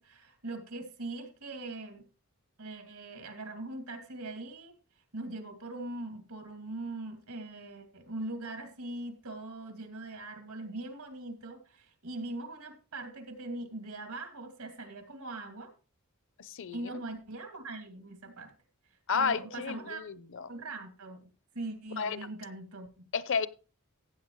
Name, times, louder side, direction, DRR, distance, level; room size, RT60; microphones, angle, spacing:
voice 1, 0.0-2.0 2.6-4.8 5.1-15.7 16.7-18.5 18.9-20.0 20.5-23.1, right 2 dB, 85° right, 2.6 m, -41 dB
voice 2, 16.4-16.9 19.1-20.5 22.0-22.3 23.1-23.5, left 6 dB, 60° left, 0.7 m, -32 dB
15.5 x 8.6 x 3.1 m
head